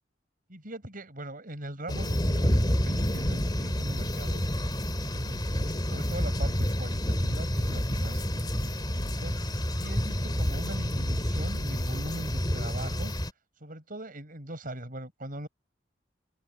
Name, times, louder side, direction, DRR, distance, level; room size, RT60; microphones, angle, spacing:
voice 1, 0.5-4.5 5.0-9.3 9.7-13.1 13.6-15.5, right 1 dB, 50° right, 7.4 m, -40 dB
sound 1, 1.9-13.3, equal, 25° left, 2.9 m, -29 dB
head